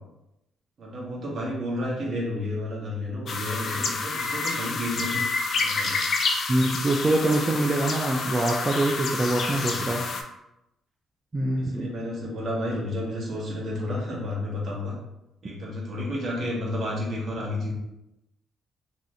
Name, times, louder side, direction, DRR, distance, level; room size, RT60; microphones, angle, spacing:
voice 1, 0.8-5.2 5.6-6.0 9.6-10.0 11.6-15.0 15.4-17.7, left 1 dB, 60° right, -4 dB, 1.1 m, -31 dB
sound 1, 3.3-10.2, left 4 dB, 55° left, 0.4 m, -29 dB
voice 2, 6.5-10.0 11.3-11.9, right 2 dB, 25° right, -1 dB, 0.4 m, -24 dB
3.0 x 2.7 x 2.7 m, 0.89 s
cardioid pair, 90°, 0 cm